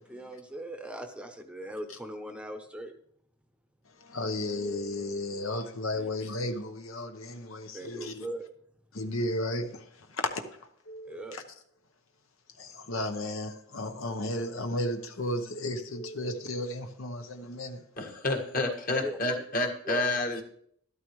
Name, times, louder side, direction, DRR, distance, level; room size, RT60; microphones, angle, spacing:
voice 1, 0.1-2.9 5.9-6.1 7.7-8.4 11.1-11.4 18.6-18.7 19.0-19.2 19.9-20.0, right 1 dB, 5° right, 0.7 m, -39 dB
voice 2, 4.0-8.3 8.9-9.8 10.1-10.4 10.9-11.4 12.6-17.8, left 1 dB, 80° left, 1.0 m, -34 dB
voice 3, 18.0-20.4, left 2 dB, 45° left, 1.7 m, -29 dB
13.0 x 12.5 x 3.1 m
head